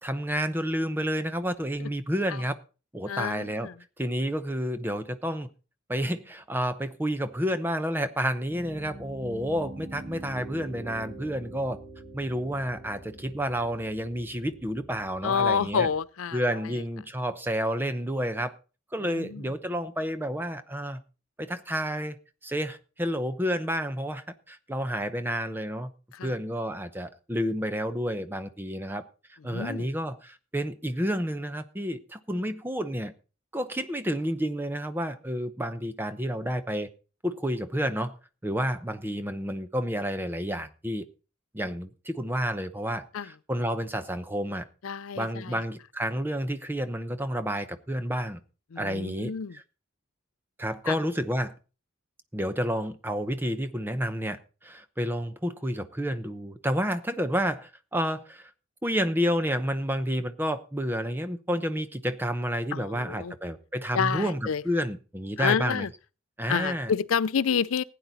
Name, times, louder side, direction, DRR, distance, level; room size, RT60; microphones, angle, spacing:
voice 1, 0.0-2.5 2.9-3.7 4.0-5.5 5.9-11.8 12.1-15.9 16.3-18.5 18.9-21.0 21.4-22.2 22.4-25.9 26.2-29.0 29.3-33.1 33.5-36.9 37.2-38.2 38.4-41.0 41.5-44.6 45.2-48.4 48.8-49.6 50.6-51.5 52.3-58.5 58.8-65.9 66.4-66.9, equal, 10° right, 0.7 m, -30 dB
voice 2, 3.1-3.7 15.2-16.8 19.0-19.4 26.1-26.3 29.5-29.9 43.1-43.3 44.8-45.6 48.7-49.6 50.9-51.0 62.7-63.3 63.9-64.6 65.4-65.9 66.5-67.8, left 6 dB, 80° left, 0.5 m, -29 dB
Piano, 8.5-16.0, right 1 dB, 45° right, 1.8 m, -44 dB
16.0 x 9.3 x 4.1 m
head